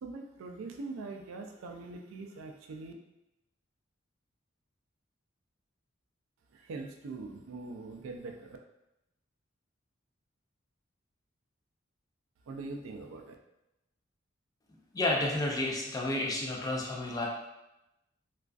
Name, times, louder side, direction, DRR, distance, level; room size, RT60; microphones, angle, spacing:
voice 1, 0.0-2.9 6.5-8.6 12.5-13.4, right 3 dB, 80° right, 3 dB, 0.3 m, -42 dB
voice 2, 14.9-17.3, left 2 dB, 20° left, -1 dB, 0.3 m, -31 dB
2.4 x 2.3 x 2.2 m, 0.91 s
head